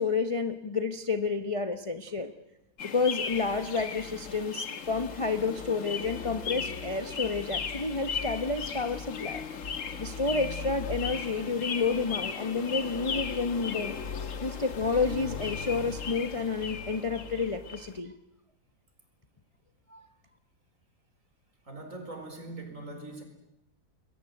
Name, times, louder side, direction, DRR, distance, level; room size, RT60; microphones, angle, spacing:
voice 1, 0.0-2.3 2.8-9.4 10.0-14.0 14.4-18.1 19.9-20.0, left 4 dB, 25° left, 8 dB, 0.9 m, -30 dB
sound 1, 2.8-18.0, left 6 dB, 50° left, 1.6 m, -36 dB
voice 2, 21.6-23.2, right 2 dB, 50° right, 5 dB, 4.9 m, -41 dB
28.5 x 21.5 x 8.0 m, 0.82 s
omnidirectional pair, 1.8 m